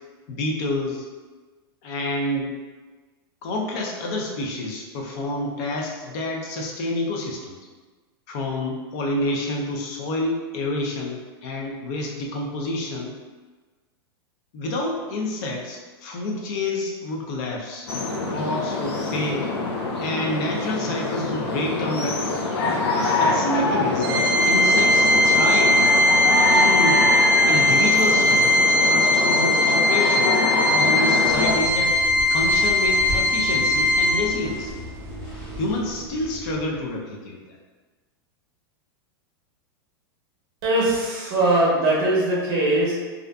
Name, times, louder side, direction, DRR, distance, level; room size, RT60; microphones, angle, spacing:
voice 1, 0.3-1.1 1.8-2.5 3.4-7.6 8.3-13.1 14.5-17.9 18.3-19.5 20.0-22.5 22.9-25.8 26.2-27.0 27.5-28.6 28.9-30.3 30.7-32.0 32.3-34.7 35.6-37.6, left 1 dB, 40° left, 0 dB, 0.4 m, -28 dB
sound 1, 17.9-31.5, left 2 dB, 90° left, 0.5 m, -25 dB
Organ, 24.0-34.6, left 1 dB, 65° right, 0.5 m, -19 dB
sound 2, 31.2-37.0, equal, 10° left, 0.8 m, -36 dB
voice 2, 40.6-42.9, right 1 dB, 30° right, -5 dB, 0.8 m, -21 dB
2.5 x 2.3 x 2.2 m, 1.3 s
supercardioid pair, 155°, 13 cm